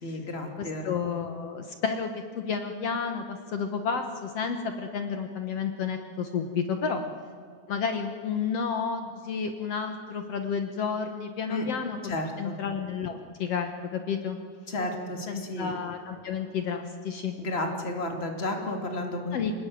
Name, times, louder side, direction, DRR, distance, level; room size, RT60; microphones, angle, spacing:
voice 1, 0.0-1.0 11.5-11.7 12.0-12.5 14.7-15.7 17.4-19.4, left 1 dB, 20° left, 3 dB, 2.1 m, -32 dB
voice 2, 0.6-2.1 2.3-7.0 7.7-14.4 15.3-17.4 19.3-19.5, left 6 dB, 80° left, 6 dB, 1.4 m, -31 dB
27.5 x 18.5 x 9.4 m, 2.2 s
omnidirectional pair, 4.8 m